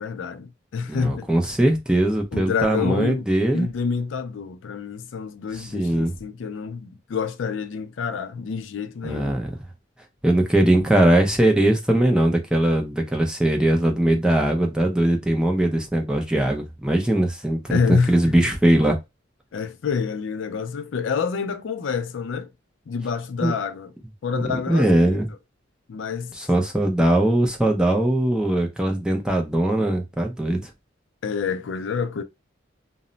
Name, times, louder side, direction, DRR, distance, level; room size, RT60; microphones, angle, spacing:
voice 1, 0.0-1.4 2.3-3.2 3.5-9.3 17.7-18.5 19.5-22.5 22.9-23.9 24.2-25.2 25.9-26.3 31.2-32.2, left 5 dB, 70° left, 0.4 m, -27 dB
voice 2, 0.9-3.7 5.5-6.1 9.0-9.5 10.2-17.8 18.1-19.0 23.4-23.5 24.3-24.4 24.7-25.3 26.3-30.7, right 1 dB, 5° right, 0.4 m, -20 dB
2.1 x 2.0 x 3.8 m
head